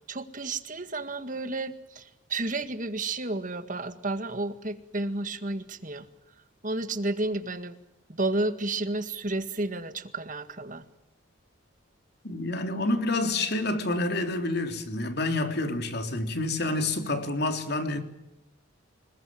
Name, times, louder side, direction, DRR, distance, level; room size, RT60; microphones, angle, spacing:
voice 1, 0.0-6.1 6.6-7.7 8.1-10.8, right 2 dB, 40° right, 1.9 m, -31 dB
voice 2, 12.2-18.0, left 2 dB, 55° left, 3.4 m, -28 dB
26.5 x 21.5 x 7.8 m
head